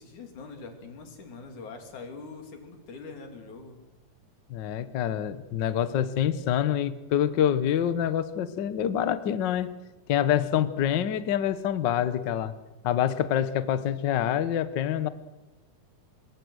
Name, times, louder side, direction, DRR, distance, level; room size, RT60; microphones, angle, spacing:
voice 1, 0.0-3.8, left 4 dB, 70° left, 4 dB, 4.4 m, -43 dB
voice 2, 4.5-9.7 10.1-12.5 12.8-15.1, left 10 dB, 90° left, 13 dB, 0.9 m, -26 dB
26.0 x 22.5 x 6.4 m, 1.1 s
omnidirectional pair, 3.6 m